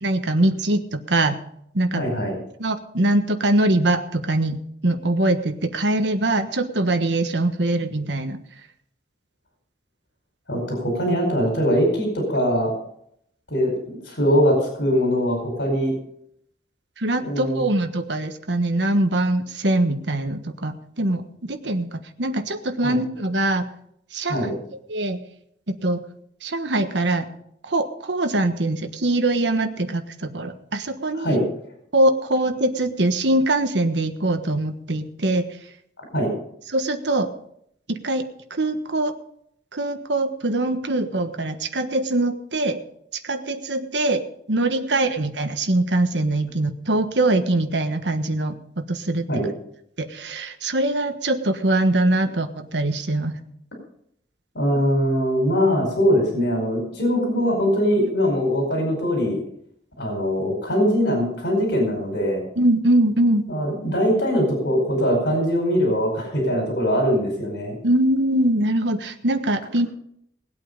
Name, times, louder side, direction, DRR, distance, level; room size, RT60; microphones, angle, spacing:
voice 1, 0.0-1.4 1.7-2.0 2.6-8.4 17.0-23.7 24.1-24.5 24.9-25.2 25.8-26.0 26.4-27.3 27.6-31.4 31.9-35.4 36.7-37.3 37.9-38.2 38.5-39.1 39.7-42.8 43.2-49.3 50.0-53.3 58.0-58.1 62.6-63.4 67.8-69.9, right 1 dB, 80° right, 7 dB, 1.4 m, -22 dB
voice 2, 1.9-2.3 10.5-12.7 13.5-16.0 17.2-17.6 22.8-23.0 24.3-24.5 31.1-31.4 36.1-36.3 49.3-49.5 54.5-59.4 60.0-62.4 63.5-67.7, equal, 80° left, 0 dB, 4.6 m, -22 dB
19.0 x 8.5 x 5.2 m, 0.70 s
head